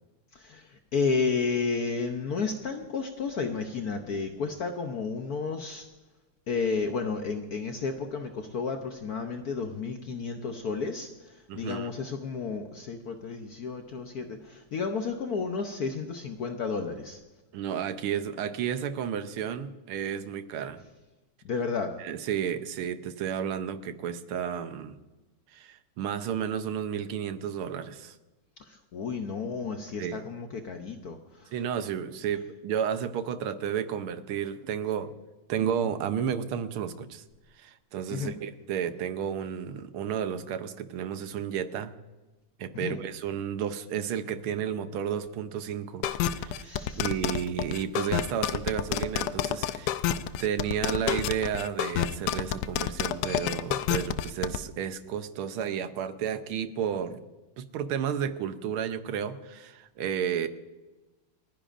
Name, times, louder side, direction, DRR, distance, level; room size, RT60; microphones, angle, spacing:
voice 1, 0.3-5.9 6.5-17.2 21.4-21.9 28.7-31.5 38.1-38.3 42.7-43.0 46.6-47.1, left 5 dB, 65° left, 5 dB, 1.0 m, -32 dB
voice 2, 11.5-11.9 17.5-20.8 22.0-24.9 25.5-28.1 30.0-30.2 31.5-35.1 35.5-37.2 37.6-41.9 42.6-50.0 50.4-57.2 57.6-60.5, right 8 dB, 75° right, 10 dB, 1.6 m, -32 dB
sound 1, 46.0-54.6, left 10 dB, 90° left, 0.9 m, -28 dB
29.5 x 10.5 x 2.5 m, 1.1 s
omnidirectional pair, 2.4 m